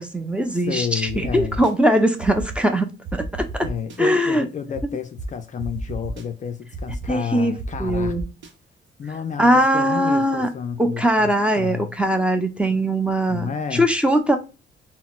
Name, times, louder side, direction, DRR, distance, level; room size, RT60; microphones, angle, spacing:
voice 1, 0.0-3.4 4.0-4.4 7.1-8.2 9.4-10.5 10.8-14.4, right 1 dB, 5° right, 0.6 m, -21 dB
voice 2, 0.5-1.6 3.6-8.1 9.0-11.9 13.3-13.8, left 7 dB, 40° left, 0.4 m, -30 dB
sound 1, 1.1-1.7 2.2-2.6 3.0-4.0 4.7-4.8 5.2-5.3 5.6-6.2 6.7-7.1 7.6-8.5, right 1 dB, 65° right, 0.8 m, -31 dB
3.9 x 2.0 x 2.3 m
cardioid pair, 90°, 20 cm